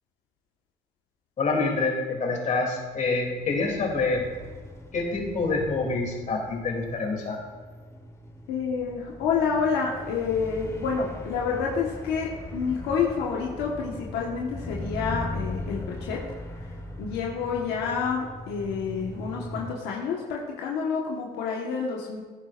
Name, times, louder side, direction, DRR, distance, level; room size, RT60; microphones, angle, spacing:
voice 1, 1.4-4.2 4.9-7.4, left 3 dB, 45° left, 1 dB, 2.9 m, -26 dB
sound 1, 2.8-19.7, left 1 dB, 15° left, 1.3 m, -39 dB
voice 2, 8.5-16.2 17.0-22.2, left 5 dB, 90° left, -2 dB, 1.4 m, -28 dB
16.0 x 9.5 x 2.5 m, 1.5 s
cardioid pair, 110°, 17 cm